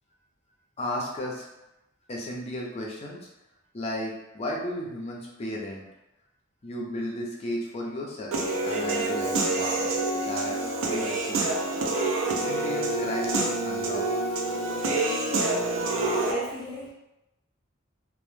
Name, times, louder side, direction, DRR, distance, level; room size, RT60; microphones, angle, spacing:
voice 1, 0.8-1.5 2.1-3.3 3.7-5.8 6.6-8.4 8.6-9.9 10.2-11.5 12.3-14.1, left 1 dB, 30° left, -2 dB, 0.4 m, -34 dB
Human voice / Piano, 8.3-16.3, right 2 dB, 80° right, 0.4 m, -27 dB
voice 2, 16.0-16.9, right 1 dB, 45° right, -8 dB, 1.0 m, -35 dB
2.0 x 2.0 x 3.1 m, 0.94 s
head